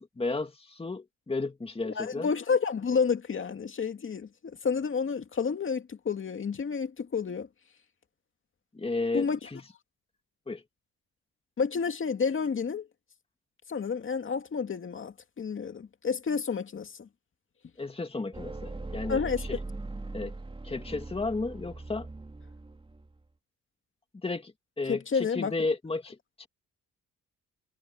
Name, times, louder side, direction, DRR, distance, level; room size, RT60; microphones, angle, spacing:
voice 1, 0.0-2.3 8.7-9.6 10.5-10.6 17.8-19.2 19.5-19.6 20.1-20.3 20.6-22.1 24.2-26.5, left 3 dB, 20° left, 2.3 m, -33 dB
voice 2, 1.8-7.5 9.1-9.4 11.6-12.9 13.7-17.1 19.1-19.5 24.9-25.7, left 5 dB, 40° left, 2.4 m, -30 dB
sound 1, 18.3-23.2, right 2 dB, 15° right, 3.3 m, -40 dB
cardioid pair, 90°, 30 cm